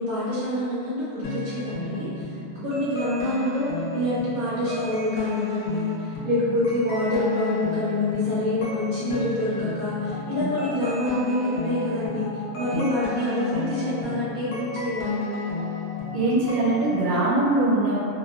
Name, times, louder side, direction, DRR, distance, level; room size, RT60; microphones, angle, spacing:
voice 1, 0.0-2.3 2.6-12.3 12.6-15.3, left 1 dB, 60° right, -11 dB, 0.5 m, -26 dB
sound 1, 1.2-17.0, left 3 dB, 65° left, 0.9 m, -33 dB
voice 2, 16.1-18.0, right 2 dB, 75° right, -8 dB, 1.1 m, -23 dB
2.9 x 2.1 x 2.2 m, 2.4 s
omnidirectional pair, 1.7 m